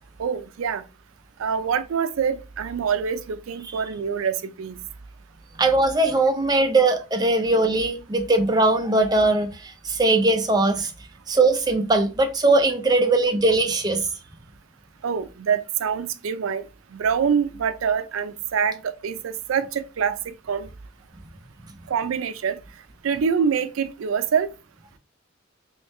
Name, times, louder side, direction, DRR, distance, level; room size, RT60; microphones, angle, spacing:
voice 1, 0.2-0.8 1.4-4.8 15.0-16.6 16.9-20.2 20.5-20.7 21.9-22.6 23.0-24.5, right 6 dB, 85° right, 0.4 m, -25 dB
voice 2, 5.6-10.9 11.3-14.1, right 2 dB, 20° right, 0.4 m, -20 dB
3.2 x 3.1 x 3.1 m
head